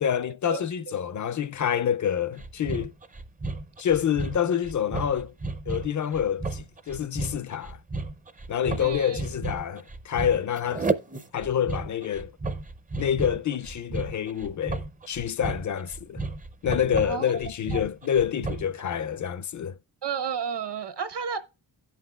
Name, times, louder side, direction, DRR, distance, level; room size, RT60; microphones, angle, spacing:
voice 1, 0.0-2.9 3.8-5.3 5.7-7.8 8.5-10.9 11.3-12.3 13.0-16.2 16.6-19.8, left 9 dB, 45° left, 0.4 m, -27 dB
sound 1, 2.4-18.8, right 3 dB, 20° right, 0.5 m, -33 dB
voice 2, 8.8-9.2 17.0-17.4 17.7-17.8 20.0-21.4, right 7 dB, 65° right, 1.2 m, -32 dB
16.5 x 5.7 x 2.3 m
wide cardioid pair, 125°, 45 cm